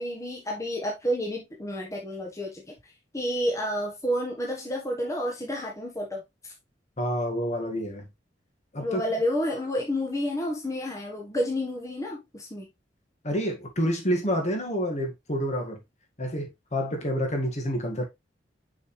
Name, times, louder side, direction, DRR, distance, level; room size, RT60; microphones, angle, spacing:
voice 1, 0.0-2.6 3.1-6.5 8.8-12.7, equal, 20° left, 1.4 m, -30 dB
voice 2, 7.0-8.1 8.7-9.0 13.2-15.8 16.2-18.0, equal, 40° left, 1.9 m, -28 dB
6.4 x 5.1 x 3.2 m
head